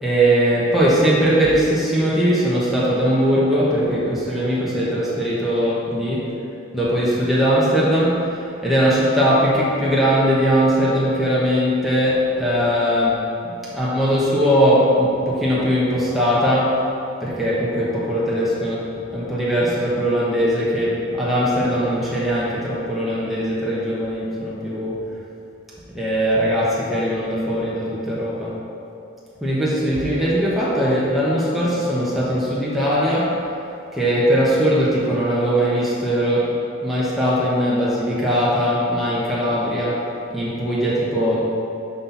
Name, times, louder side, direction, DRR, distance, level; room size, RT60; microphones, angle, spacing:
voice 1, 0.0-6.4 6.7-16.8 17.2-25.1 25.9-28.5 29.4-33.4 33.9-41.5, equal, ahead, -8 dB, 1.2 m, -20 dB
12.0 x 4.3 x 4.1 m, 2.8 s
head